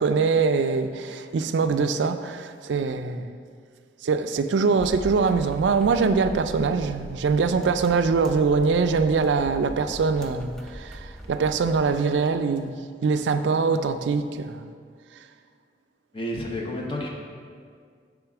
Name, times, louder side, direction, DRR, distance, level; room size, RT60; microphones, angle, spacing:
voice 1, 0.0-3.4 4.0-12.8 13.0-14.7, right 4 dB, 85° right, 0.4 m, -23 dB
sound 1, 4.8-11.9, equal, 5° left, 0.5 m, -40 dB
voice 2, 16.1-17.1, left 1 dB, 30° left, 1.0 m, -30 dB
8.0 x 3.7 x 6.0 m
head